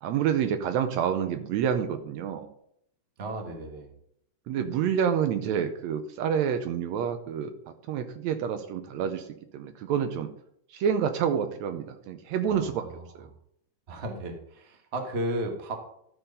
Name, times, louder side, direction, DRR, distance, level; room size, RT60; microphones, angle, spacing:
voice 1, 0.0-2.5 4.5-7.5 7.9-9.3 9.5-10.3 10.7-12.9 13.2-13.3, right 8 dB, 80° right, 9 dB, 1.8 m, -28 dB
voice 2, 3.2-3.9 12.5-13.0 13.9-15.8, right 1 dB, 35° right, 2 dB, 1.0 m, -34 dB
12.5 x 4.6 x 5.2 m, 0.73 s
omnidirectional pair, 3.3 m